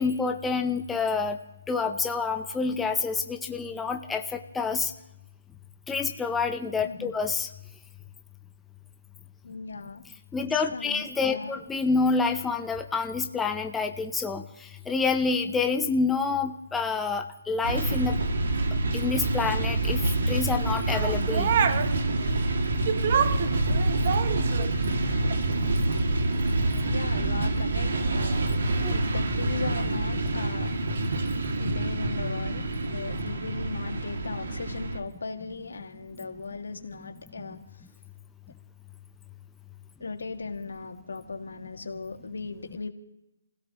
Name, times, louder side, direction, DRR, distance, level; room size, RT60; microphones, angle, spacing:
voice 1, 0.0-1.4 1.7-4.9 5.9-7.5 10.3-18.2 18.9-21.6 26.3-26.8 28.8-28.9 37.4-37.5, left 4 dB, 5° left, 5 dB, 0.5 m, -28 dB
voice 2, 9.4-10.0 10.5-11.6 26.8-28.5 28.9-30.7 31.5-37.6 40.0-42.9, left 4 dB, 90° left, 5 dB, 1.9 m, -37 dB
sound 1, 17.6-35.0, right 2 dB, 60° right, 2.2 m, -27 dB
sound 2, 20.9-22.0 22.9-24.8 25.3-25.5, right 7 dB, 35° right, 0.8 m, -27 dB
29.0 x 16.5 x 3.0 m, 0.91 s
hypercardioid pair, 170°, 0 cm